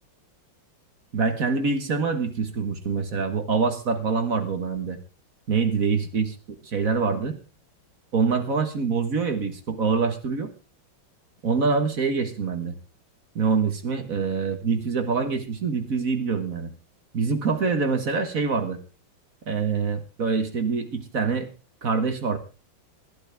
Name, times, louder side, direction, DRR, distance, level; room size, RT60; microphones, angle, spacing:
voice 1, 1.1-5.0 5.5-6.3 6.6-7.4 8.1-10.5 11.4-12.7 13.3-16.7 17.1-18.8 19.5-21.5 21.8-22.4, right 5 dB, 45° right, 8 dB, 1.7 m, -25 dB
20.5 x 12.5 x 3.5 m, 0.32 s
omnidirectional pair, 2.3 m